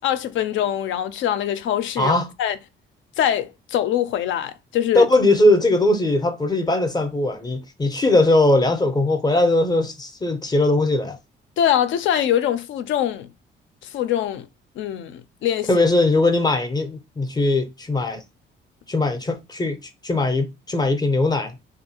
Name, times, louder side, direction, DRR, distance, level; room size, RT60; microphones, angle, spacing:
voice 1, 0.0-2.6 3.2-5.1 11.6-13.3 13.8-14.5 14.8-15.9, left 10 dB, 75° left, 0.4 m, -23 dB
voice 2, 2.0-2.3 4.9-11.2 15.7-18.2 18.9-19.8 20.0-21.6, left 2 dB, 20° left, 0.5 m, -20 dB
2.6 x 2.4 x 2.7 m
cardioid pair, 90°, 20 cm